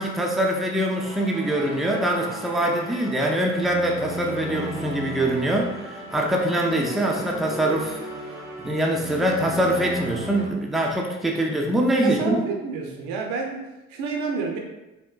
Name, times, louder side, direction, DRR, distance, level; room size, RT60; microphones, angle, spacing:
voice 1, 0.0-8.0 8.6-12.4, right 1 dB, ahead, 0 dB, 0.3 m, -24 dB
sound 1, 0.9-10.5, right 1 dB, 85° left, 0.8 m, -35 dB
voice 2, 12.0-14.6, right 4 dB, 55° right, 1 dB, 0.5 m, -29 dB
3.5 x 2.1 x 2.3 m, 1.0 s
figure-of-eight pair, 45°, 37 cm